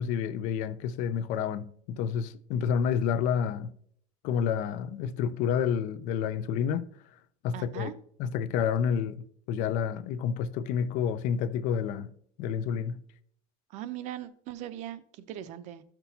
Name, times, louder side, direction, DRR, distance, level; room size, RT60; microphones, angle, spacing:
voice 1, 0.0-3.7 4.2-6.8 7.4-7.9 8.2-12.1 12.4-13.0, left 7 dB, 60° left, 0.5 m, -29 dB
voice 2, 7.5-7.9 13.7-15.8, right 12 dB, 55° right, 0.6 m, -39 dB
13.0 x 6.0 x 2.8 m
cardioid pair, 170°, 15 cm